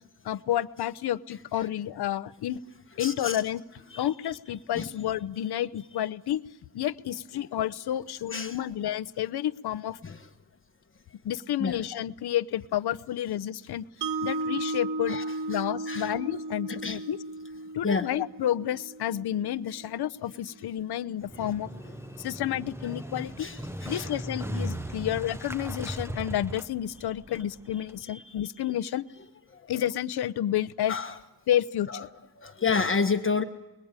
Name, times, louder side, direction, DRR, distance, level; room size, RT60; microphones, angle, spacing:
voice 1, 0.2-2.6 3.0-3.6 4.0-6.4 6.7-10.0 11.2-13.8 14.2-15.2 15.5-17.2 17.7-21.7 22.2-23.5 23.9-29.0 29.7-30.9 31.5-32.1, left 11 dB, 65° left, 15 dB, 0.9 m, -30 dB
voice 2, 3.0-3.4 3.9-4.1 4.7-4.9 7.4-7.5 8.3-8.6 10.0-10.3 11.6-11.8 15.1-16.1 16.7-17.0 17.8-18.1 22.1-22.3 23.4-24.1 24.9-25.0 28.0-28.5 29.5-29.7 30.9-31.2 31.9-32.0 32.4-33.4, left 5 dB, 30° left, 5 dB, 1.3 m, -31 dB
Mallet percussion, 14.0-20.2, right 2 dB, 80° right, 1.9 m, -35 dB
Motorcycle, 21.2-28.0, equal, 5° right, 0.9 m, -37 dB
29.0 x 21.0 x 9.0 m, 1.0 s
cardioid pair, 110°, 42 cm